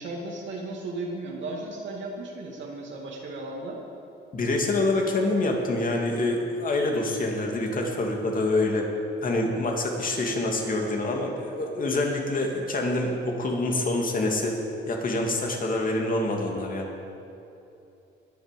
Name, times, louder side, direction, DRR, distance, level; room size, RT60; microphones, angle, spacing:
voice 1, 0.0-3.8, right 2 dB, 70° right, -2 dB, 2.2 m, -35 dB
voice 2, 4.3-8.9 9.2-14.6 14.9-16.9, left 2 dB, 45° left, 1 dB, 2.5 m, -26 dB
21.0 x 7.9 x 5.3 m, 2.8 s
cardioid pair, 90°, 20 cm